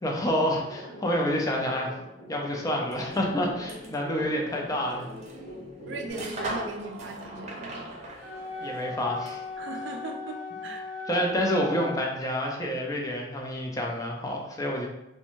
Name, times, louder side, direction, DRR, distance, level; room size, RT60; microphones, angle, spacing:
voice 1, 0.0-1.9 2.3-5.1 8.6-9.4 11.1-14.9, equal, 20° left, 0 dB, 0.4 m, -28 dB
sound 1, 0.6-6.1, left 1 dB, 85° left, 0.7 m, -44 dB
sound 2, 2.8-9.6, right 1 dB, 40° right, 0.6 m, -41 dB
voice 2, 5.9-8.0 9.6-10.8, right 2 dB, 75° right, 3 dB, 0.4 m, -38 dB
Wind instrument woodwind instrument, 8.2-12.1, left 3 dB, ahead, 1.0 m, -38 dB
2.5 x 2.2 x 2.9 m, 0.90 s
head